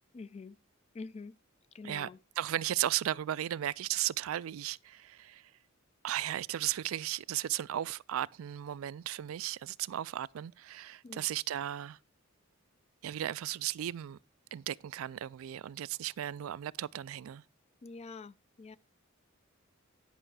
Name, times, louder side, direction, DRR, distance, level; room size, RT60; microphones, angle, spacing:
voice 1, 0.1-0.6 0.9-1.4 1.7-2.2 11.0-11.3 17.8-18.8, left 4 dB, 30° left, 0.4 m, -46 dB
voice 2, 2.4-5.5 6.0-12.0 13.0-14.2 14.5-17.4, right 12 dB, 75° right, 0.3 m, -35 dB
10.0 x 5.5 x 4.8 m
head